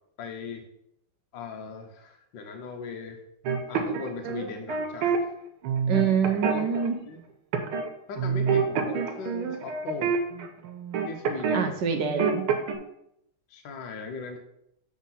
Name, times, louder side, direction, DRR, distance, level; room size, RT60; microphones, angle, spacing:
voice 1, 0.2-0.6 1.3-3.2 3.7-5.3 6.4-7.3 8.1-10.2 11.1-11.8 13.5-14.4, left 4 dB, 65° left, 3 dB, 1.5 m, -38 dB
sound 1, 3.4-5.2 5.6-6.9 7.5-7.9 8.2-11.6 11.9-12.7, right 6 dB, 90° right, 1.7 m, -27 dB
voice 2, 5.9-6.9 11.5-12.4, right 7 dB, 70° right, 6 dB, 1.1 m, -25 dB
7.3 x 3.7 x 5.6 m, 0.76 s
omnidirectional pair, 2.3 m